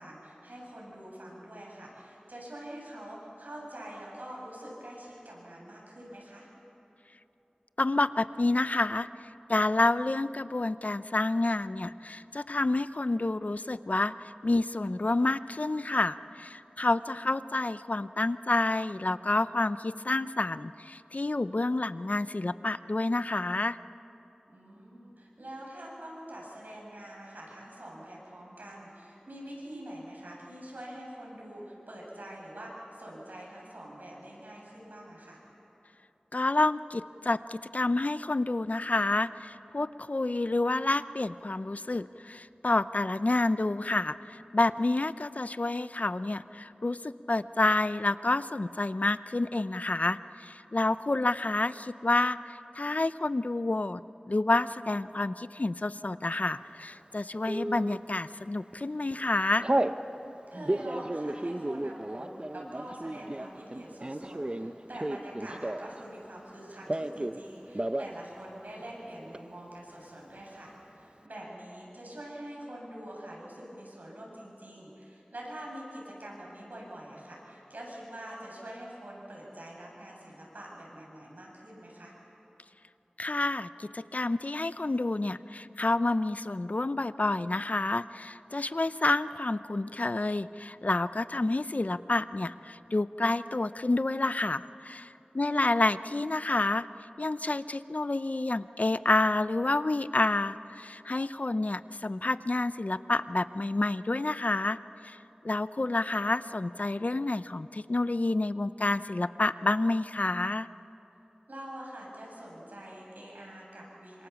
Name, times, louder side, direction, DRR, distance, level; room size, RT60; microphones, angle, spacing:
voice 1, 0.0-6.5 17.0-17.1 24.5-35.4 50.8-51.0 60.5-82.1 95.4-95.6 111.5-114.3, right 1 dB, 85° right, -3 dB, 8.0 m, -45 dB
voice 2, 7.8-23.8 36.3-54.0 54.3-59.7 83.2-96.9 97.2-104.8 105.0-105.2 105.4-110.7, left 2 dB, 60° left, 14 dB, 0.6 m, -29 dB
Telephone, 57.5-58.0 58.6-58.8 59.1-60.0 60.5-66.0 66.3-67.4 67.7-68.1 68.4-68.5 68.8-69.4, right 1 dB, 35° right, 0.9 m, -33 dB
27.5 x 25.5 x 7.1 m, 3.0 s
wide cardioid pair, 50°, 3 cm